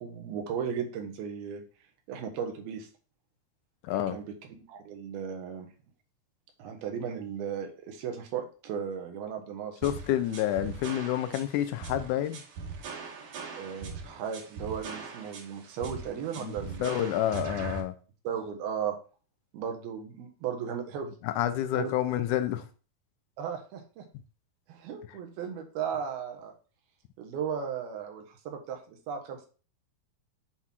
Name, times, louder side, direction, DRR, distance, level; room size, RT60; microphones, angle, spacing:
voice 1, 0.0-1.6 2.1-2.9 4.1-5.7 6.6-9.8 13.6-17.1 18.2-19.0 19.5-21.1 21.7-22.0 23.4-24.1 24.7-26.5 27.2-29.5, right 7 dB, 80° right, 3.1 m, -36 dB
voice 2, 3.8-4.2 9.8-12.4 16.4-17.9 21.2-22.7, left 12 dB, 85° left, 1.8 m, -29 dB
sound 1, 9.8-17.8, right 5 dB, 65° right, 2.5 m, -40 dB
7.9 x 3.7 x 5.9 m
omnidirectional pair, 4.3 m